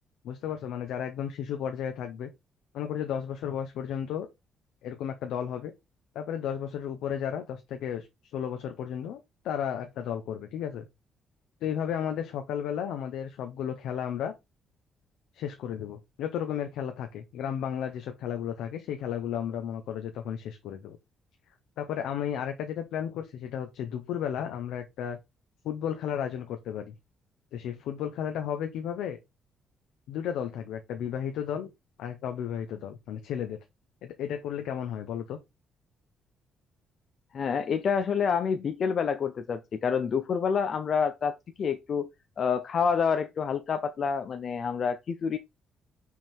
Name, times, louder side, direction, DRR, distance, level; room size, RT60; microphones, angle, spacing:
voice 1, 0.2-2.3 2.7-4.3 4.8-5.7 6.1-8.1 8.3-9.2 9.4-10.9 11.6-14.3 15.3-21.0 21.8-25.2 25.6-26.9 27.5-29.2 30.1-31.7 32.0-33.6 34.0-35.4, left 9 dB, 85° left, 0.9 m, -33 dB
voice 2, 37.3-42.1 42.4-45.4, left 6 dB, 55° left, 0.6 m, -28 dB
6.0 x 3.7 x 4.4 m
cardioid pair, 90°, 0 cm